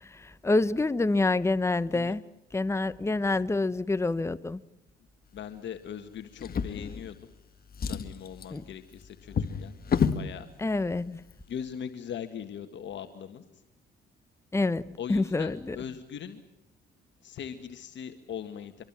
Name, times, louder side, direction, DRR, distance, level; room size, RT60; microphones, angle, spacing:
voice 1, 0.0-2.2 2.5-4.6 8.5-8.6 10.6-11.2 14.5-15.8, left 2 dB, 15° left, 0.9 m, -27 dB
voice 2, 5.3-7.2 7.8-10.5 11.5-13.4 15.0-16.4 17.2-18.8, left 8 dB, 65° left, 1.8 m, -40 dB
Drawer open or close, 6.4-7.4 7.7-10.3 11.2-11.3 11.7-11.8, left 6 dB, 50° left, 1.7 m, -31 dB
25.0 x 23.5 x 7.5 m
cardioid pair, 90°, 20 cm